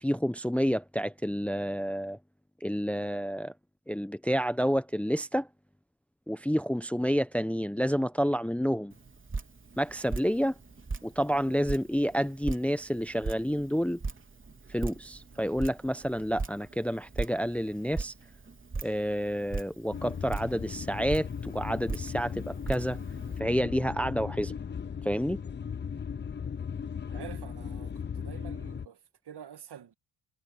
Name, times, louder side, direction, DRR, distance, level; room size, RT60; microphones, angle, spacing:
voice 1, 0.0-2.2 2.6-3.5 3.9-5.5 6.3-8.9 9.8-10.5 11.0-14.0 14.7-18.1 18.8-23.0 23.4-24.5 25.0-25.4, equal, 5° left, 0.9 m, -29 dB
Drip, 8.9-23.4, right 3 dB, 25° right, 3.4 m, -40 dB
sound 1, 19.9-28.9, left 7 dB, 25° left, 0.6 m, -37 dB
voice 2, 27.1-29.9, right 9 dB, 55° right, 2.1 m, -47 dB
cardioid pair, 80°, 47 cm